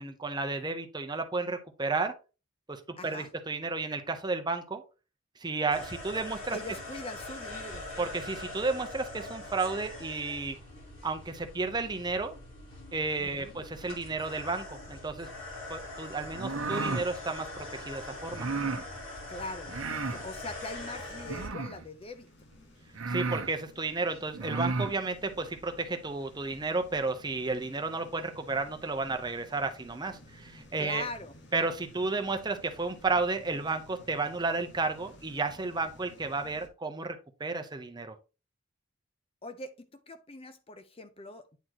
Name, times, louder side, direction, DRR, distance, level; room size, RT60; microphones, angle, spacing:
voice 1, 0.0-2.1 2.7-4.8 5.4-6.6 8.0-10.6 11.0-12.4 12.9-15.3 15.7-18.5 23.1-31.1 31.5-38.1, right 3 dB, 20° right, 0.8 m, -32 dB
voice 2, 3.0-3.3 6.5-7.9 13.2-13.6 19.3-19.7 20.1-22.3 30.8-31.4 39.4-41.6, left 2 dB, 30° left, 0.6 m, -42 dB
sound 1, 5.7-21.5, left 2 dB, 90° left, 4.2 m, -43 dB
sound 2, 16.3-17.1 18.3-18.8 19.7-20.2 21.2-21.8 22.5-22.6 22.9-23.5 24.3-24.9, right 3 dB, 85° right, 0.9 m, -33 dB
sound 3, 21.5-36.7, left 1 dB, 60° left, 1.4 m, -55 dB
9.2 x 4.3 x 2.9 m
head